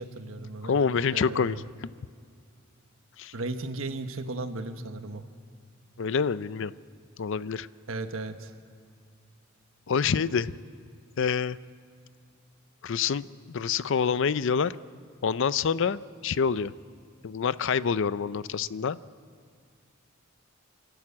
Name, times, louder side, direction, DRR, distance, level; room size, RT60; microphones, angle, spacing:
voice 1, 0.0-0.8 1.1-1.6 3.3-5.2 7.9-8.5, right 2 dB, 85° right, 8 dB, 1.3 m, -35 dB
voice 2, 0.6-1.9 3.2-3.3 6.0-6.7 7.2-7.7 9.9-10.5 11.2-11.6 12.8-14.8 15.2-16.7 17.2-19.0, left 6 dB, 65° left, 17 dB, 0.5 m, -27 dB
27.5 x 12.0 x 8.7 m, 2.2 s
head